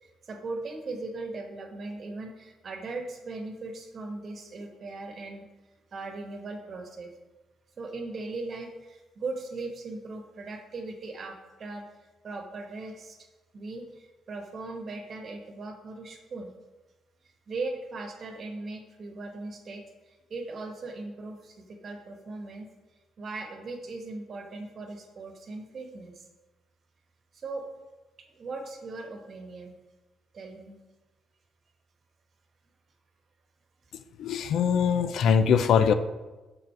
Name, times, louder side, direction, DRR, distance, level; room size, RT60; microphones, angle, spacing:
voice 1, 0.0-5.4 5.9-7.1 7.8-13.3 13.5-16.5 17.5-22.7 23.2-26.3 27.3-27.7 28.3-29.7 30.3-30.7, right 3 dB, 50° right, 4 dB, 1.1 m, -39 dB
voice 2, 34.2-35.9, left 7 dB, 75° left, 11 dB, 0.4 m, -22 dB
5.7 x 3.7 x 5.7 m, 1.1 s
cardioid pair, 90°, 0 cm